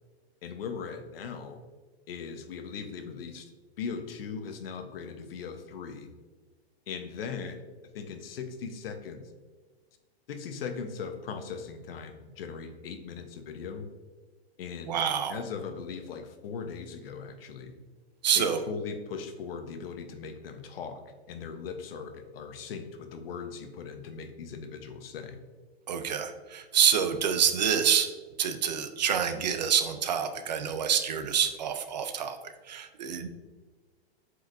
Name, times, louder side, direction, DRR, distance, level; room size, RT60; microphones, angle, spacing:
voice 1, 0.4-1.6 2.1-3.5 3.8-6.1 6.9-7.6 7.9-9.2 10.3-13.9 14.6-15.0 15.3-17.7 18.3-21.0 21.3-25.4, left 6 dB, 60° left, 6 dB, 0.9 m, -39 dB
voice 2, 14.9-15.4 18.2-18.6 25.9-28.1 28.4-33.3, right 8 dB, 45° right, 8 dB, 0.4 m, -27 dB
7.9 x 4.8 x 2.6 m, 1.4 s
supercardioid pair, 175°, 32 cm